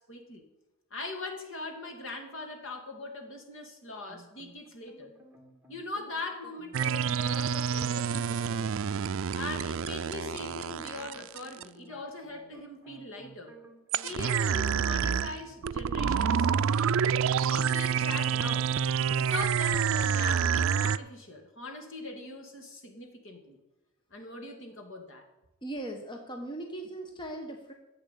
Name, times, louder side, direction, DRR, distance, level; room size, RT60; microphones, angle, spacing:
voice 1, 0.1-0.4 0.9-5.1 5.7-8.7 9.3-13.5 14.0-16.5 17.4-18.7 19.1-23.6 24.1-25.2, left 2 dB, 60° left, 3 dB, 2.4 m, -41 dB
sound 1, 4.1-14.6 14.9-16.3, right 1 dB, 10° right, 1.9 m, -53 dB
sound 2, 6.7-11.6 13.9-21.0, right 7 dB, 65° right, 0.4 m, -28 dB
voice 2, 25.6-27.7, right 1 dB, 20° left, 3 dB, 1.1 m, -39 dB
13.0 x 7.8 x 8.4 m, 0.98 s
head